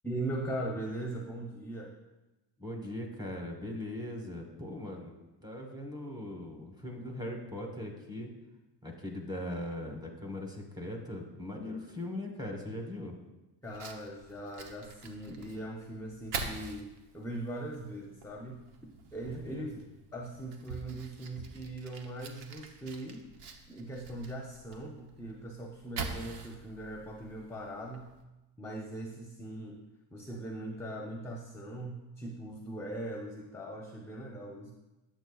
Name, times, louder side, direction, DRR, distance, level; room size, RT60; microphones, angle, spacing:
voice 1, 0.0-1.9 13.6-18.6 19.1-19.8 20.1-23.2 23.7-28.1 28.6-29.8 30.1-34.7, right 1 dB, 5° left, 0 dB, 0.5 m, -40 dB
voice 2, 2.6-5.1 5.4-8.3 8.8-13.1 19.3-19.8, left 1 dB, 10° right, 2 dB, 1.0 m, -40 dB
Fire, 13.6-28.2, right 4 dB, 75° right, 0.9 m, -45 dB
8.0 x 7.3 x 2.3 m, 1.1 s
cardioid pair, 130°, 42 cm